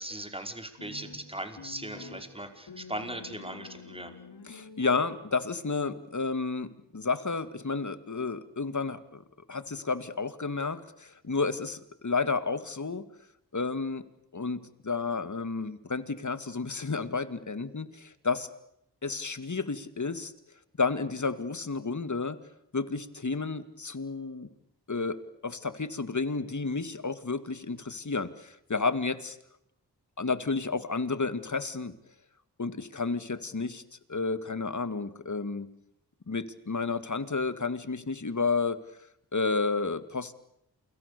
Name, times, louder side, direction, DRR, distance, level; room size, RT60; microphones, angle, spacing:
voice 1, 0.0-4.1, right 1 dB, 15° right, 7 dB, 5.1 m, -39 dB
sound 1, 0.8-5.6, left 4 dB, 75° left, 5.9 m, -47 dB
voice 2, 4.5-9.2 9.5-13.0 13.5-14.0 14.3-18.5 19.0-20.3 20.8-22.4 22.7-24.5 24.9-29.4 30.2-31.9 32.6-33.8 34.1-35.7 36.3-38.8 39.3-40.3, left 4 dB, 45° left, 13 dB, 2.4 m, -31 dB
29.0 x 25.0 x 6.9 m, 0.78 s
cardioid pair, 50°, 40 cm